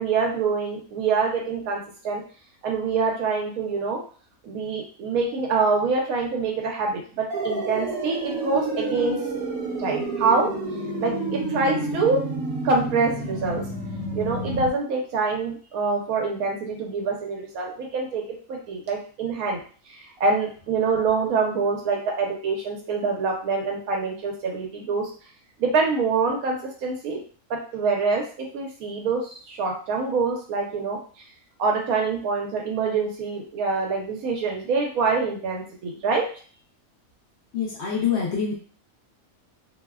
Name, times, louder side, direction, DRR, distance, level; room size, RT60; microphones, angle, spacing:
voice 1, 0.0-1.8 2.0-2.2 2.6-4.0 4.4-9.2 9.8-10.5 11.0-12.2 12.6-13.6 14.1-18.2 18.5-19.6 19.9-25.1 25.6-27.2 27.5-31.0 31.6-36.3, right 4 dB, 85° right, 0 dB, 1.1 m, -25 dB
sound 1, 7.3-14.7, right 2 dB, 70° right, 1.0 m, -29 dB
voice 2, 37.5-38.6, left 7 dB, 65° left, -3 dB, 0.7 m, -25 dB
2.7 x 2.1 x 2.2 m, 0.41 s
omnidirectional pair, 1.5 m